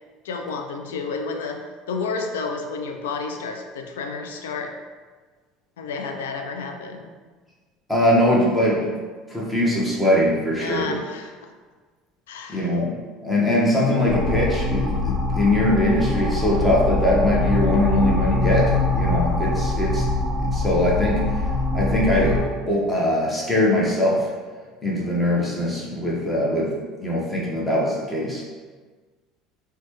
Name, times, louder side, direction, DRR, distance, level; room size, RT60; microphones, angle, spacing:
voice 1, 0.2-4.7 5.8-7.1 10.6-11.5 12.3-12.8, left 4 dB, 85° left, 4 dB, 0.3 m, -31 dB
voice 2, 7.9-9.0 9.3-10.9 12.5-12.9 13.2-20.0 20.4-21.4 21.7-24.3 24.8-26.7 27.0-28.4, left 1 dB, 10° left, -5 dB, 0.9 m, -21 dB
sound 1, 14.1-22.4, left 2 dB, 25° right, 1.2 m, -23 dB
3.1 x 2.2 x 3.0 m, 1.4 s
hypercardioid pair, 80°, 0 cm